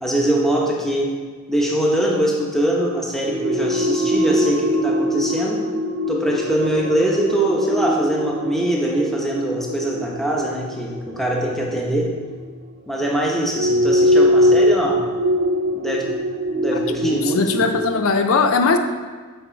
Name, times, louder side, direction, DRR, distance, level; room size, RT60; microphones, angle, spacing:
voice 1, 0.0-1.1 1.5-5.7 6.1-12.1 12.9-15.0 15.7-16.1 16.5-17.4, right 1 dB, ahead, -3 dB, 1.1 m, -22 dB
sound 1, 3.3-12.5 13.5-17.9, equal, 55° right, 0.8 m, -22 dB
voice 2, 16.7-18.8, left 4 dB, 70° left, 7 dB, 0.5 m, -20 dB
7.9 x 6.1 x 4.6 m, 1.5 s
head